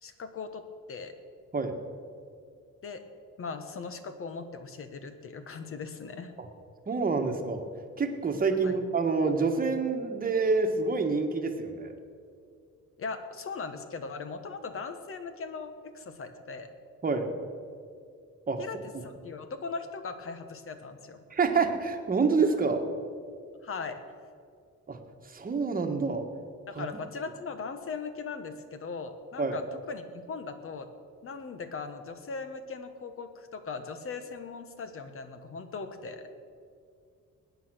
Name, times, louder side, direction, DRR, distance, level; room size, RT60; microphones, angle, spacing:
voice 1, 0.0-1.1 2.8-3.0 3.4-6.3 8.6-8.8 13.0-16.7 18.6-21.2 23.6-24.0 26.7-30.9 31.2-36.3, left 4 dB, 50° left, 8 dB, 1.3 m, -39 dB
voice 2, 6.9-7.6 8.0-11.9 17.0-17.3 18.5-18.6 21.3-22.9 24.9-26.2 26.7-26.9 29.4-29.6, right 4 dB, 30° right, 4 dB, 1.4 m, -27 dB
19.5 x 9.4 x 6.2 m, 2.3 s
cardioid pair, 140°, 29 cm